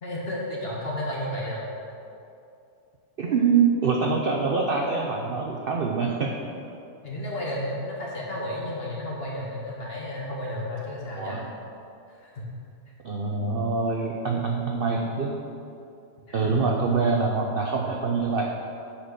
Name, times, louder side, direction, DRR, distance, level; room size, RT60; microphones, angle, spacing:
voice 1, 0.0-1.7 7.0-11.4 12.1-12.5 16.3-16.7, left 1 dB, 40° left, -4 dB, 1.6 m, -32 dB
voice 2, 3.2-6.3 11.1-11.5 13.0-15.3 16.3-18.5, right 5 dB, 60° right, 0 dB, 0.5 m, -25 dB
8.9 x 4.4 x 6.6 m, 2.6 s
omnidirectional pair, 1.7 m